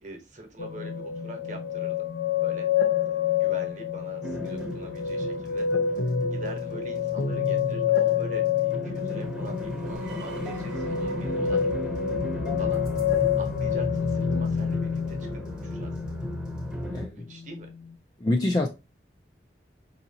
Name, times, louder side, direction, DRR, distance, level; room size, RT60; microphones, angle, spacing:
voice 1, 0.0-2.1 2.4-2.7 3.1-5.7 6.0-6.1 6.3-11.7 12.6-12.8 13.4-15.9 17.1-17.7, right 2 dB, 45° right, 1.0 m, -44 dB
sound 1, 0.6-16.8 17.2-17.9, left 8 dB, 90° left, 0.7 m, -28 dB
sound 2, 4.2-17.1, equal, 5° right, 0.8 m, -35 dB
sound 3, 9.9-15.0, right 6 dB, 80° right, 0.7 m, -46 dB
voice 2, 16.9-17.3 18.2-18.7, left 2 dB, 20° left, 0.4 m, -25 dB
4.7 x 2.8 x 2.7 m
head